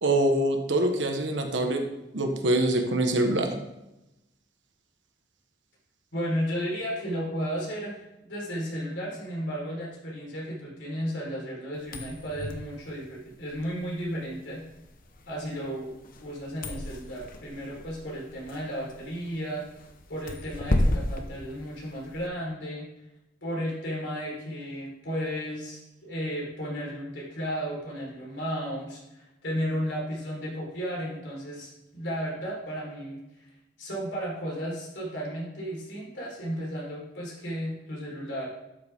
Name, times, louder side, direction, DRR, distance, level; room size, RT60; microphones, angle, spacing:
voice 1, 0.0-1.8 2.1-3.5, right 1 dB, 70° right, 4 dB, 1.4 m, -24 dB
voice 2, 6.1-14.6 15.3-15.9 16.2-19.6 20.1-22.9 23.4-33.5 33.8-38.5, equal, 70° left, -3 dB, 4.1 m, -34 dB
sound 1, 11.8-22.3, left 1 dB, 50° left, 1.0 m, -34 dB
12.5 x 7.5 x 3.7 m, 0.94 s
head